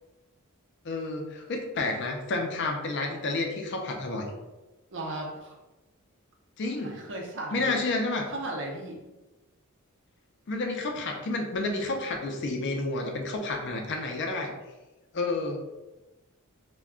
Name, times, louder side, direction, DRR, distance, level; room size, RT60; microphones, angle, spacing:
voice 1, 0.8-4.3 6.6-6.9 7.5-8.3 10.5-14.5 15.1-15.6, left 2 dB, 55° left, 2 dB, 0.5 m, -30 dB
voice 2, 4.9-5.6 6.8-7.8 8.3-9.0, right 2 dB, 55° right, 0 dB, 0.6 m, -36 dB
2.2 x 2.2 x 3.6 m, 1.1 s
head